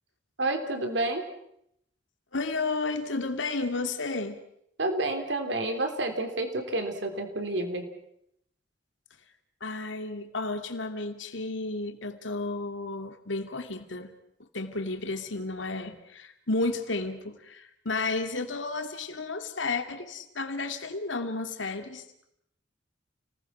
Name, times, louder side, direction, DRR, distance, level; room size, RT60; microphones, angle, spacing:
voice 1, 0.4-1.2 4.8-7.9, right 2 dB, 70° right, 6 dB, 3.6 m, -29 dB
voice 2, 2.3-4.4 9.6-14.1 14.5-22.0, left 3 dB, 85° left, 7 dB, 2.4 m, -32 dB
30.0 x 20.0 x 6.0 m, 0.74 s
head